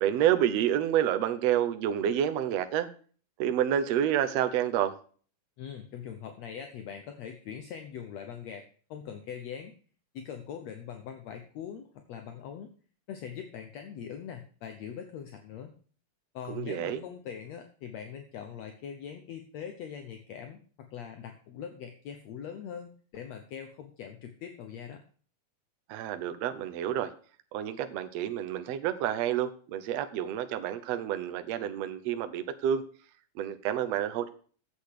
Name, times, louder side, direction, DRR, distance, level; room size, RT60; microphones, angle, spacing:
voice 1, 0.0-2.9 3.4-4.9 16.5-17.0 25.9-27.1 27.5-32.8 33.4-34.3, right 10 dB, 70° right, 9 dB, 1.8 m, -29 dB
voice 2, 5.6-8.6 8.9-9.7 10.1-12.7 13.1-15.7 16.3-25.0, left 8 dB, 70° left, 6 dB, 2.0 m, -42 dB
8.5 x 7.9 x 6.6 m, 0.43 s
omnidirectional pair, 3.6 m